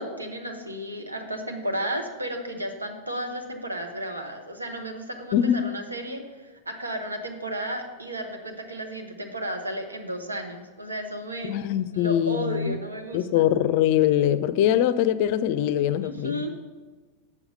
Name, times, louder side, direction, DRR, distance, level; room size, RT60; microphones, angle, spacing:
voice 1, 0.0-11.5 11.9-13.4 16.0-16.5, right 1 dB, 80° right, 1.2 m, -33 dB
voice 2, 5.3-5.7 11.4-12.8 13.1-16.4, left 11 dB, 45° left, 0.5 m, -23 dB
8.2 x 7.1 x 5.3 m
figure-of-eight pair, 90°, 0 cm